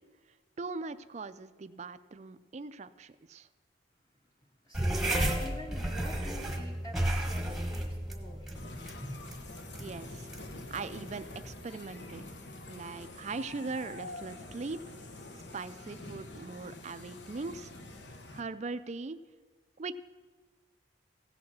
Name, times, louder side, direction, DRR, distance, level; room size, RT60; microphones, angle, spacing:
voice 1, 0.6-3.5 9.8-10.3 10.7-12.2 12.7-14.8 15.5-17.7 18.3-19.2 19.8-19.9, right 3 dB, 35° right, 13 dB, 0.4 m, -40 dB
voice 2, 4.6-8.5, left 1 dB, 20° left, -1 dB, 1.1 m, -47 dB
sound 1, 4.7-11.6, right 1 dB, ahead, 1.2 m, -34 dB
sound 2, 8.5-18.4, left 2 dB, 70° left, 1.1 m, -46 dB
16.0 x 7.2 x 6.2 m, 1.4 s
head